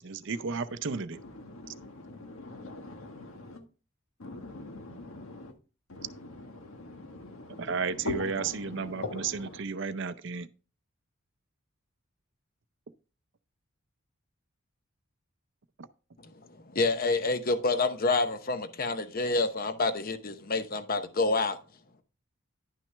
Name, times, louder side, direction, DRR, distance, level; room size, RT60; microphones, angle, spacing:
voice 1, 0.0-1.2 7.6-10.5 15.8-15.9, right 5 dB, 60° right, 0.6 m, -33 dB
voice 2, 0.9-3.6 4.2-5.5 5.9-9.6, left 2 dB, 85° left, 1.5 m, -42 dB
voice 3, 16.7-21.6, left 3 dB, 45° left, 0.8 m, -28 dB
11.0 x 6.0 x 3.4 m
head